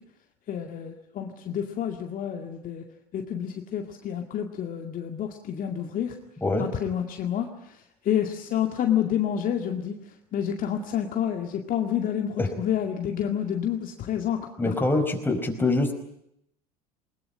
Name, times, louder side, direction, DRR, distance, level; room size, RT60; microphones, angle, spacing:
voice 1, 0.5-2.8 3.1-6.1 6.6-10.0 10.3-14.4 14.7-14.8, left 9 dB, 45° left, 4 dB, 2.2 m, -29 dB
voice 2, 14.6-15.9, left 2 dB, 10° left, 5 dB, 4.8 m, -24 dB
20.5 x 20.0 x 9.9 m, 0.76 s
hypercardioid pair, 80°, 20 cm